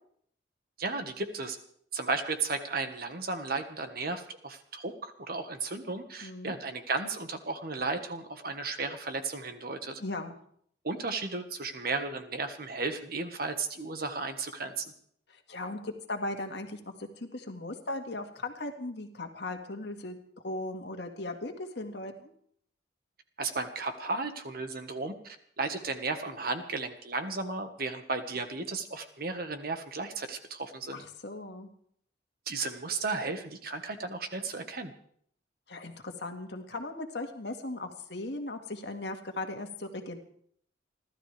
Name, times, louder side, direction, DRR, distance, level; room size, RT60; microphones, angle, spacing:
voice 1, 0.8-1.6 1.9-10.0 10.8-14.9 23.4-31.0 32.5-34.9, right 3 dB, 50° right, 7 dB, 1.5 m, -34 dB
voice 2, 6.2-6.5 10.0-10.3 15.3-20.2 20.4-22.3 30.9-31.7 35.7-40.2, left 2 dB, 60° left, 4 dB, 1.9 m, -38 dB
30.0 x 12.5 x 3.4 m, 0.63 s
head